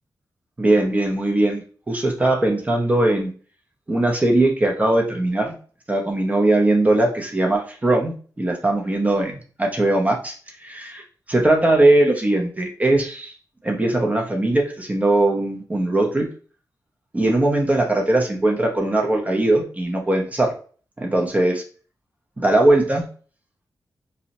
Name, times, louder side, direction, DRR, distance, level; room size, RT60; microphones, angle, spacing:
voice 1, 0.6-3.3 3.9-5.6 5.9-10.3 10.6-11.0 11.3-13.3 13.6-16.3 17.1-20.5 21.0-21.6 22.4-23.1, right 2 dB, 20° right, 1 dB, 0.4 m, -20 dB
2.5 x 2.0 x 2.8 m, 0.40 s
wide cardioid pair, 130°, 7 cm